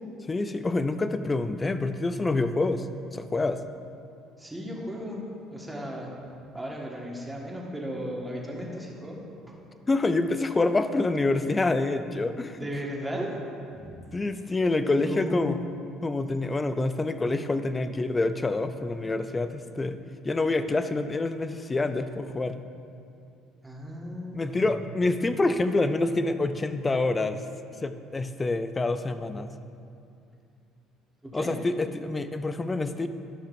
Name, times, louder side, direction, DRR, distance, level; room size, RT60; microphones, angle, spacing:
voice 1, 0.3-2.9 3.1-3.6 9.9-12.7 14.1-15.6 16.0-20.0 20.2-22.6 24.3-27.4 27.8-29.5 31.3-33.1, left 2 dB, 20° left, 10 dB, 0.4 m, -27 dB
voice 2, 4.4-5.2 5.5-6.1 6.5-9.6 12.5-13.3 13.7-14.1 14.8-15.5 23.6-24.7 31.2-31.5, equal, 10° right, -2 dB, 1.5 m, -36 dB
13.0 x 5.8 x 2.6 m, 2.5 s
supercardioid pair, 95°, 0 cm